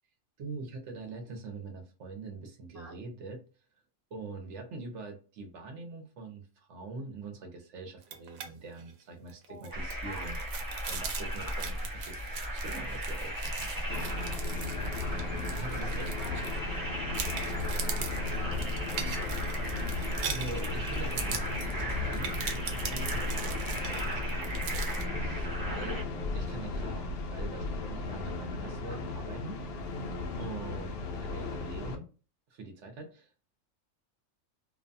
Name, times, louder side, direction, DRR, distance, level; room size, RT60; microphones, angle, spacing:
voice 1, 0.4-3.4 4.1-12.2 12.6-14.0 14.7-14.8 15.5-16.1 20.2-26.0 26.3-29.6 30.4-32.1 32.5-33.3, right 3 dB, 65° right, 4 dB, 0.9 m, -44 dB
sound 1, 8.0-8.5 8.8-8.9 9.3-16.8 17.1-25.0, right 7 dB, 90° right, 1.0 m, -41 dB
voice 2, 9.5-9.8 11.1-11.4 13.9-14.2 15.8-16.4 17.6-20.2 25.8-26.0 28.9-29.1, left 1 dB, 85° left, -1 dB, 0.3 m, -50 dB
sound 2, 9.7-26.0, equal, 25° right, 0.4 m, -35 dB
sound 3, 13.9-32.0, left 3 dB, 65° left, 0.7 m, -37 dB
2.5 x 2.2 x 2.5 m, 0.36 s
omnidirectional pair, 1.4 m